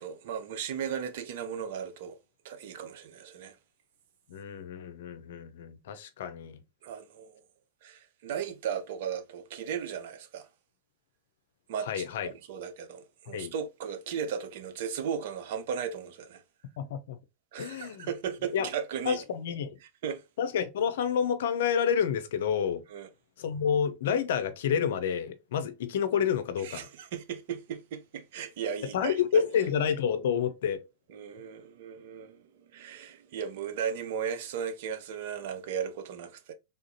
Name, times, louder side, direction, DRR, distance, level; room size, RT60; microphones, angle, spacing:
voice 1, 0.0-2.2 2.4-3.6 6.8-7.4 7.8-10.5 11.7-16.4 17.5-19.2 20.0-20.2 22.9-23.1 26.6-29.5 31.1-36.5, right 7 dB, 60° right, 0.5 m, -36 dB
voice 2, 4.3-6.6 11.9-12.3 13.3-13.5 16.8-17.2 17.6-18.1 18.5-18.7 19.1-19.8 20.4-22.8 23.4-26.9 28.9-30.8, left 7 dB, 65° left, 0.5 m, -29 dB
3.5 x 2.5 x 2.6 m
hypercardioid pair, 100°, 0 cm